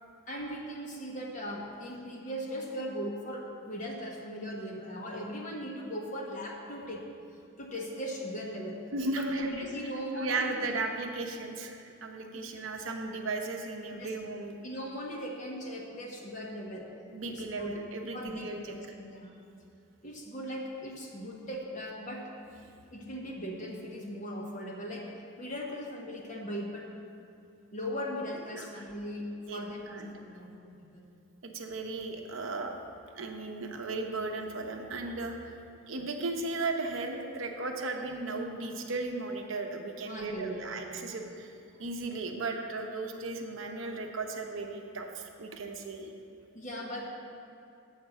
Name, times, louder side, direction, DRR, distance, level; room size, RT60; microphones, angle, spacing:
voice 1, 0.3-7.0 7.6-8.8 9.2-10.8 12.3-12.5 14.0-14.1 14.6-16.9 17.3-17.8 18.1-19.3 20.0-22.2 22.9-25.1 25.4-26.9 27.7-31.0 40.0-41.1 46.5-47.1, equal, 35° left, -1 dB, 1.1 m, -39 dB
voice 2, 8.9-9.7 10.2-14.6 17.1-18.7 28.5-28.7 29.5-30.2 31.4-32.7 33.1-35.6 35.9-41.5 41.8-46.1, right 3 dB, 65° right, 3 dB, 0.7 m, -36 dB
7.3 x 5.1 x 7.2 m, 2.6 s
head